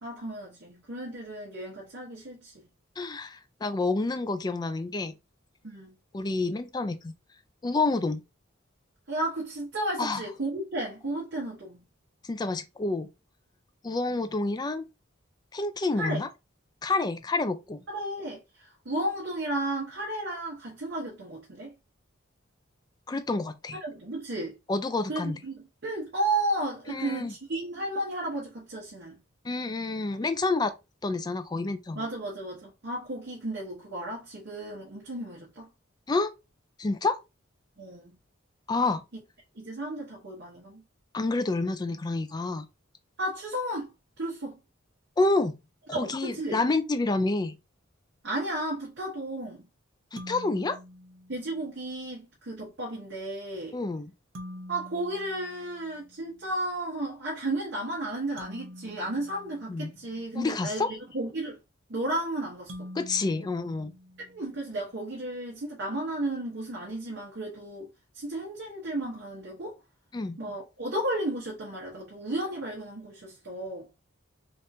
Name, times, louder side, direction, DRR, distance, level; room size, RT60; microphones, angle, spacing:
voice 1, 0.0-2.7 5.6-6.0 9.1-11.9 15.9-16.3 17.9-21.7 23.8-24.5 25.1-29.2 32.0-35.7 37.8-38.2 39.1-39.2 39.5-40.8 43.2-43.9 44.2-44.6 45.9-46.6 48.2-49.7 51.3-53.8 54.7-61.6 61.9-62.9 64.3-67.9 68.1-69.8 70.4-73.9, right 1 dB, 60° right, 0.9 m, -33 dB
voice 2, 3.0-5.1 6.1-7.1 7.6-8.2 10.0-10.2 12.2-13.1 13.8-14.9 15.5-16.3 16.8-17.8 23.1-23.8 24.7-25.4 26.9-27.3 29.4-30.7 31.0-32.0 36.1-36.3 36.8-37.2 38.7-39.0 41.1-42.6 45.2-45.5 45.9-47.5 50.1-50.8 53.7-54.1 59.7-59.9 60.3-60.9 63.0-63.9 70.1-70.4, left 3 dB, 20° left, 0.3 m, -28 dB
sound 1, 50.2-51.8 54.3-56.4 58.4-60.5 62.7-64.7, left 1 dB, 80° right, 0.7 m, -46 dB
3.5 x 2.4 x 2.7 m
head